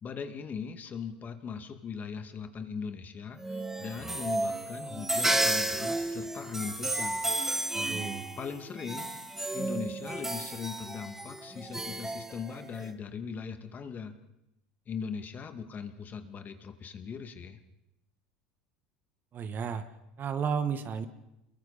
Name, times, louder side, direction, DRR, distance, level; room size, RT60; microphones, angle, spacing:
voice 1, 0.0-7.2 8.4-9.1 9.5-14.1 14.9-17.6, left 6 dB, 35° left, 7 dB, 2.4 m, -39 dB
sound 1, 3.4-12.9, right 2 dB, 10° right, 1.9 m, -32 dB
voice 2, 7.7-8.3 19.3-19.8 20.2-21.1, right 6 dB, 40° right, 9 dB, 1.9 m, -32 dB
29.5 x 22.5 x 4.4 m, 0.88 s
hypercardioid pair, 80°, 5 cm